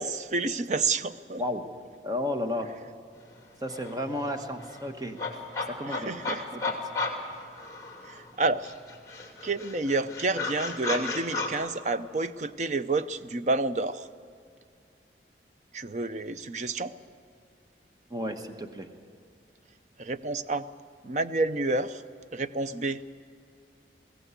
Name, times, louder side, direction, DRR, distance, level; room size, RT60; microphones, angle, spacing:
voice 1, 0.0-1.4 5.8-6.5 8.0-8.7 9.4-14.1 15.7-17.0 20.0-20.7 21.0-22.0 22.3-23.0, right 3 dB, 40° right, 13 dB, 0.6 m, -29 dB
voice 2, 2.0-2.7 3.6-5.2 5.7-6.1 6.7-6.9 18.1-18.9, left 1 dB, 20° right, 6 dB, 1.2 m, -32 dB
sound 1, 3.3-3.4 3.7-8.3 8.6-11.5, left 3 dB, 20° left, 2.6 m, -34 dB
21.0 x 16.5 x 8.2 m, 2.4 s
head